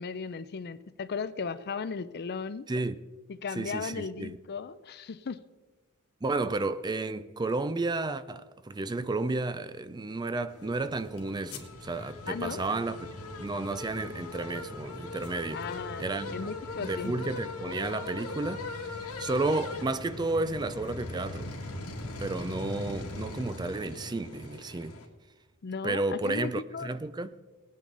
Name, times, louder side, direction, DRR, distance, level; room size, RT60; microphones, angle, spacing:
voice 1, 0.0-2.7 3.4-5.4 12.3-12.6 15.5-16.0 16.3-17.2 25.6-26.9, left 5 dB, 45° left, 0.5 m, -36 dB
voice 2, 3.5-4.3 6.2-13.1 13.4-15.6 16.0-16.5 16.8-21.6 22.2-25.0 25.8-27.3, right 2 dB, 20° right, 0.4 m, -32 dB
sound 1, 10.5-25.1, left 2 dB, 90° left, 1.9 m, -40 dB
19.0 x 9.3 x 3.9 m
head